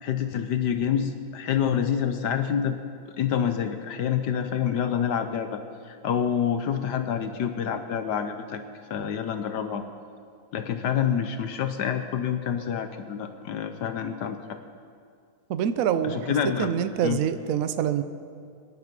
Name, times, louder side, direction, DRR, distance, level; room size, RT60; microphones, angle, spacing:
voice 1, 0.0-2.8 3.2-5.6 5.9-8.6 8.9-9.8 10.5-14.6 16.0-16.7 17.0-17.2, left 8 dB, 75° left, 8 dB, 1.4 m, -27 dB
voice 2, 15.5-18.0, right 9 dB, 60° right, 11 dB, 1.0 m, -26 dB
23.5 x 10.5 x 5.3 m, 2.3 s
omnidirectional pair, 1.9 m